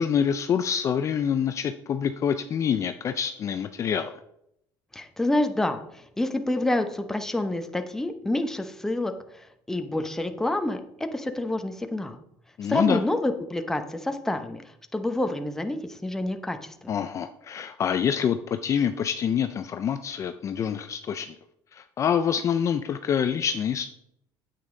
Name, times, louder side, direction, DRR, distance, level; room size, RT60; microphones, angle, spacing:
voice 1, 0.0-4.1 12.6-13.0 16.9-21.3 21.7-23.9, left 8 dB, 35° left, 9 dB, 0.5 m, -26 dB
voice 2, 4.9-12.2 12.7-14.6 14.9-16.9, left 1 dB, 5° left, 7 dB, 0.8 m, -28 dB
9.0 x 8.2 x 3.8 m, 0.75 s
cardioid pair, 135°, 9 cm